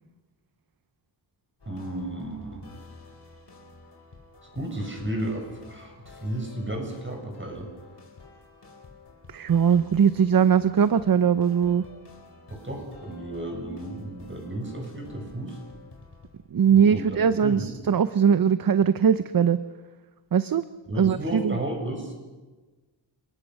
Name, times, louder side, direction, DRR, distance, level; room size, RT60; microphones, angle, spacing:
sound 1, 1.6-16.6, left 3 dB, 60° left, 4.4 m, -50 dB
voice 1, 1.6-2.6 4.5-7.7 9.7-9.8 12.5-15.6 16.7-17.7 20.9-22.1, right 1 dB, 25° right, 2 dB, 6.7 m, -33 dB
voice 2, 9.3-11.8 16.5-19.6 20.3-20.6 21.0-21.6, right 7 dB, 50° right, 13 dB, 0.7 m, -21 dB
29.5 x 19.0 x 6.5 m, 1.3 s
wide cardioid pair, 115°, 44 cm